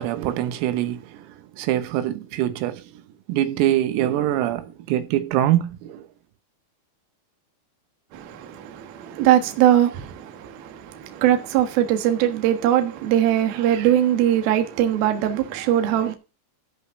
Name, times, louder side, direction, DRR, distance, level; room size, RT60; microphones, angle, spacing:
voice 1, 0.0-3.0 3.3-6.1, right 12 dB, 85° right, 3.8 m, -24 dB
voice 2, 8.1-16.1, right 11 dB, 65° right, 2.7 m, -21 dB
14.0 x 5.1 x 6.9 m
omnidirectional pair, 6.0 m